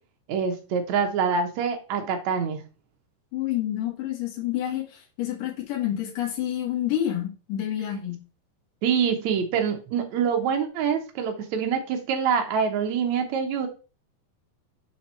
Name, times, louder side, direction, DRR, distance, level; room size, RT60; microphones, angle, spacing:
voice 1, 0.3-2.6 8.8-13.7, right 6 dB, 80° right, 4 dB, 1.6 m, -25 dB
voice 2, 3.3-4.8 5.2-8.2, left 12 dB, 55° left, -1 dB, 3.2 m, -28 dB
6.9 x 4.4 x 5.6 m, 0.34 s
omnidirectional pair, 4.9 m